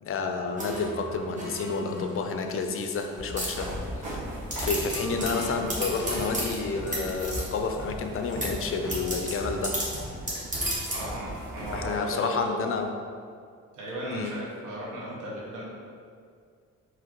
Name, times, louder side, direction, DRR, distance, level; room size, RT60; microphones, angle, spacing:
voice 1, 0.0-3.7 4.0-4.1 4.6-9.8 11.7-12.9 14.1-14.3, left 4 dB, 45° left, 5 dB, 0.5 m, -30 dB
sound 1, 0.6-2.1 2.6-3.0 3.4-4.1 4.5-7.7 8.3-11.1, equal, 25° right, 1.2 m, -34 dB
sound 2, 3.1-12.0, equal, 65° right, 1.4 m, -38 dB
voice 2, 10.9-12.7 13.7-15.6, equal, 80° right, -5 dB, 1.3 m, -36 dB
4.8 x 3.1 x 3.0 m, 2.2 s
cardioid pair, 90°, 30 cm